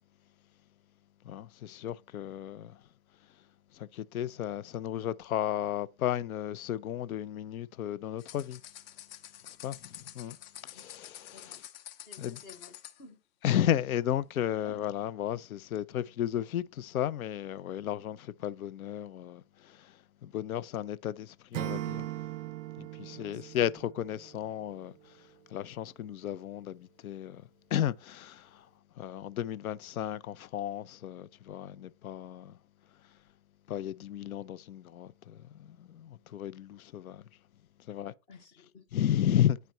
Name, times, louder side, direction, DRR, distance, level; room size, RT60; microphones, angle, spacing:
voice 1, 1.2-2.8 3.7-8.6 9.5-10.4 10.6-11.5 12.2-12.4 13.4-22.1 22.8-25.1 25.5-27.4 27.7-28.7 29.0-32.6 33.7-37.2 37.9-38.1 38.9-39.6, left 11 dB, 65° left, 0.5 m, -34 dB
sound 1, 8.2-13.0, left 12 dB, 40° left, 0.8 m, -48 dB
voice 2, 12.0-13.2 14.4-14.8 23.1-23.5 38.3-38.9, left 3 dB, 15° left, 0.4 m, -53 dB
Acoustic guitar / Strum, 21.5-24.6, right 15 dB, 60° right, 0.5 m, -39 dB
9.2 x 4.1 x 3.0 m
figure-of-eight pair, 115°, 46 cm